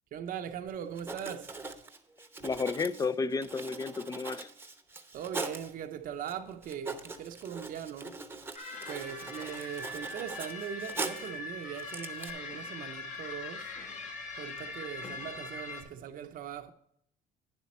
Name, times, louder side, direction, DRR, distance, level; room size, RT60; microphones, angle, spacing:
voice 1, 0.1-1.5 2.4-2.5 5.1-8.2 8.9-13.7 14.4-16.7, right 9 dB, 55° right, 0.7 m, -40 dB
Writing, 1.0-5.7 6.3-6.4 6.6-11.4 11.8-12.3, right 3 dB, 15° right, 0.8 m, -41 dB
voice 2, 2.4-4.5, left 4 dB, 20° left, 0.4 m, -32 dB
sound 1, 8.6-15.8, left 3 dB, 45° left, 1.5 m, -41 dB
9.7 x 7.4 x 4.3 m
cardioid pair, 110°, 17 cm